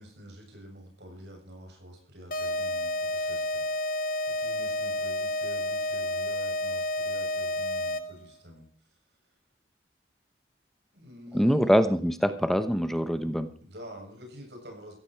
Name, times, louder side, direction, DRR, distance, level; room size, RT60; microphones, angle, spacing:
voice 1, 0.0-3.8 4.3-9.0 10.9-11.9 13.6-14.9, equal, 75° right, 3 dB, 7.7 m, -48 dB
sound 1, 2.3-8.3, left 1 dB, 50° left, 1.4 m, -30 dB
voice 2, 11.3-13.5, equal, ahead, 10 dB, 0.9 m, -24 dB
16.0 x 15.5 x 4.6 m, 0.42 s
head